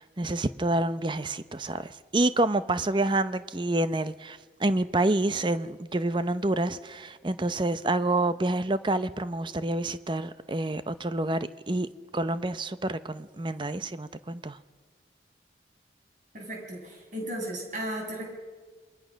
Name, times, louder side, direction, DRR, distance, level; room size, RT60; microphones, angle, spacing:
voice 1, 0.0-11.9 12.1-14.6, right 2 dB, 25° right, 0.7 m, -28 dB
voice 2, 16.3-18.2, right 1 dB, 45° right, 6.7 m, -35 dB
28.0 x 21.5 x 6.3 m
head